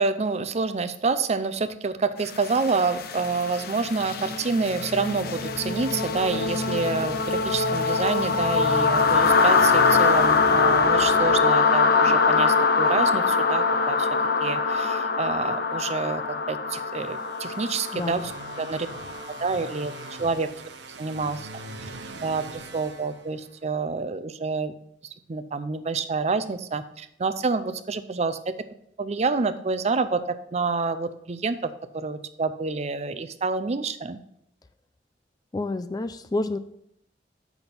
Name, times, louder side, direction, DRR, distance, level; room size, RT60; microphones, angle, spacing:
voice 1, 0.0-14.1 14.4-16.2 16.5-18.3 18.6-18.9 19.4-20.5 21.0-21.5 21.8-21.9 22.2-24.7 25.3-28.4 29.0-34.2, right 4 dB, 40° right, 12 dB, 0.5 m, -28 dB
sound 1, 2.3-20.1, left 4 dB, 60° left, 0.7 m, -23 dB
sound 2, 16.9-23.8, right 3 dB, 80° right, 0.9 m, -42 dB
voice 2, 17.9-18.3 35.5-36.6, left 2 dB, 20° left, 12 dB, 0.3 m, -29 dB
7.1 x 6.0 x 5.4 m, 0.73 s
head